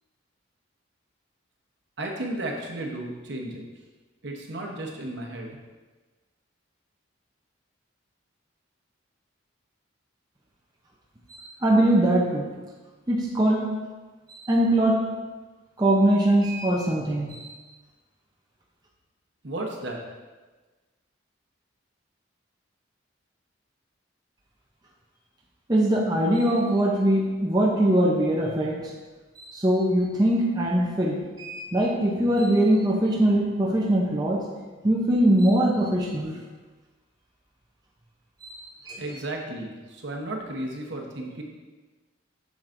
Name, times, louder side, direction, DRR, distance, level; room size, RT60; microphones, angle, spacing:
voice 1, 2.0-3.6 4.2-5.6 19.4-20.0 39.0-41.4, right 1 dB, 55° right, 0 dB, 0.9 m, -34 dB
voice 2, 11.3-12.5 13.1-13.7 14.3-15.1 15.8-17.6 25.7-28.9 29.4-34.5 34.8-36.4 38.4-38.6 38.9-39.0, right 1 dB, 20° right, -3 dB, 0.6 m, -22 dB
7.7 x 6.3 x 2.6 m, 1.3 s
head